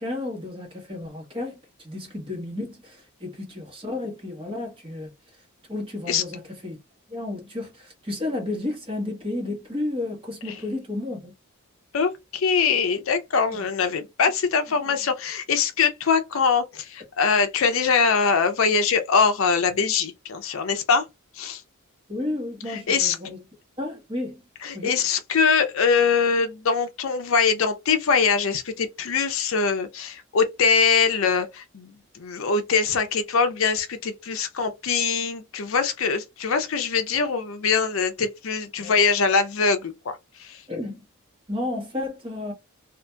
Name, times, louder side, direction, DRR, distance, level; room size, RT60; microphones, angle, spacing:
voice 1, 0.0-5.1 5.7-6.8 7.1-11.3 13.5-13.6 22.1-23.4 23.8-24.4 24.7-25.0 38.8-38.9 40.7-41.0 41.5-42.5, left 2 dB, 25° right, 1.1 m, -32 dB
voice 2, 11.9-21.1 21.3-21.6 22.7-23.2 24.6-40.6, left 5 dB, 65° left, 0.5 m, -23 dB
2.7 x 2.4 x 2.2 m
head